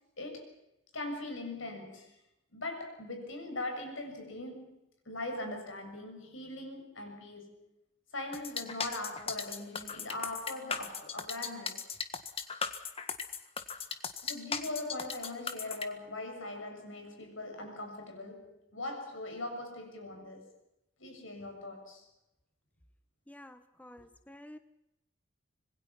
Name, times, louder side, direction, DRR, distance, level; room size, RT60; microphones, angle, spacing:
voice 1, 0.2-0.5 0.9-2.1 2.5-4.8 5.1-7.6 8.1-11.9 14.2-20.4 21.0-22.0, left 2 dB, 75° left, 6.9 m, -40 dB
sound 1, 8.3-15.9, left 6 dB, 30° left, 1.6 m, -37 dB
voice 2, 23.3-24.6, left 1 dB, 5° left, 0.9 m, -51 dB
26.0 x 21.0 x 6.0 m
head